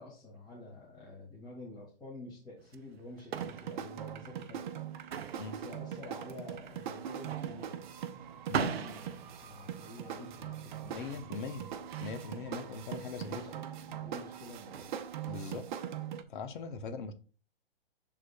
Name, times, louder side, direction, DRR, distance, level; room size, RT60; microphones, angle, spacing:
voice 1, 0.0-4.7 5.1-7.9 8.6-11.3 12.2-14.9 16.6-16.7, left 2 dB, 15° left, 2.1 m, -50 dB
sound 1, 2.6-15.6, right 7 dB, 80° right, 0.7 m, -42 dB
sound 2, 3.3-16.2, right 9 dB, 50° right, 0.9 m, -42 dB
voice 2, 10.8-11.7 12.0-13.4 15.3-15.7 16.3-17.1, left 5 dB, 55° left, 1.0 m, -40 dB
11.0 x 3.7 x 2.3 m
hypercardioid pair, 130°, 30 cm